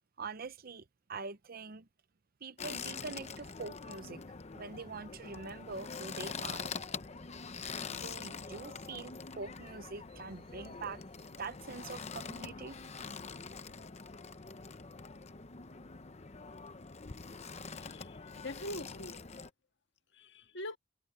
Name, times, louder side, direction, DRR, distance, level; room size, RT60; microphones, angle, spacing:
voice 1, 0.2-1.9 2.4-6.7 7.9-11.0 11.4-12.8, right 4 dB, 50° right, 0.8 m, -44 dB
sound 1, 2.6-19.5, left 5 dB, 35° left, 0.8 m, -44 dB
voice 2, 17.7-19.2 20.1-20.8, left 1 dB, 65° left, 1.7 m, -43 dB
head